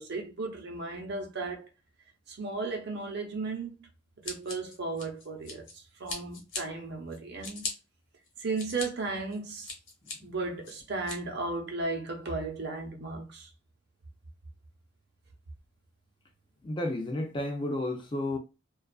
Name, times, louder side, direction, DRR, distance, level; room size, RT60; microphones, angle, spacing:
voice 1, 0.0-1.7 2.3-3.9 4.2-7.6 8.4-9.7 10.2-13.5, right 3 dB, 55° right, 0.7 m, -35 dB
Scissors, 4.2-5.7 6.1-6.6 7.1-7.7 8.3-8.9 9.3-10.1 10.6-11.2, left 3 dB, 70° left, 1.0 m, -38 dB
voice 2, 16.6-18.4, left 1 dB, 25° left, 0.4 m, -32 dB
2.4 x 2.3 x 2.3 m
head